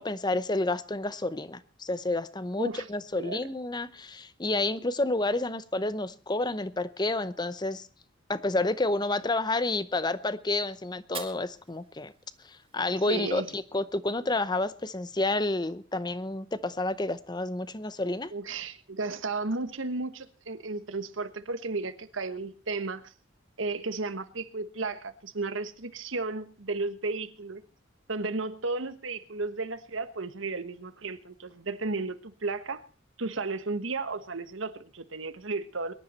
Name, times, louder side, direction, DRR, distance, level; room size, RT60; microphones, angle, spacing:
voice 1, 0.0-7.9 8.3-12.1 12.5-18.3, left 2 dB, 20° left, 15 dB, 0.8 m, -30 dB
Fire, 11.0-13.0, right 7 dB, 30° right, 2.2 m, -46 dB
voice 2, 13.1-13.5 18.3-23.1 23.6-27.6 28.1-32.8 33.2-35.9, right 3 dB, 80° right, 11 dB, 1.3 m, -34 dB
23.0 x 11.0 x 4.3 m, 0.37 s
head